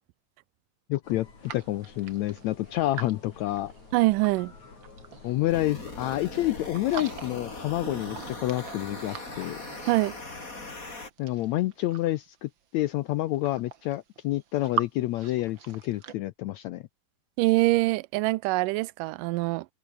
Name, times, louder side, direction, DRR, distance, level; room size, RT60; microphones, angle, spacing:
voice 1, 0.9-1.3 1.5-3.7 5.2-9.6 11.2-16.8, left 16 dB, 75° left, 1.7 m, -28 dB
sound 1, 1.0-8.3, left 4 dB, 60° left, 7.1 m, -51 dB
sound 2, 1.4-4.4 4.8-6.3 6.6-7.5 7.8-10.4 11.0-12.3 13.0-13.1 13.3-14.9 15.1-16.1, right 8 dB, 45° right, 1.8 m, -40 dB
voice 2, 3.9-4.5 9.9-10.1 17.4-19.7, right 20 dB, 90° right, 2.2 m, -24 dB
sound 3, 5.5-11.1, left 2 dB, 25° left, 4.8 m, -40 dB
omnidirectional pair, 3.8 m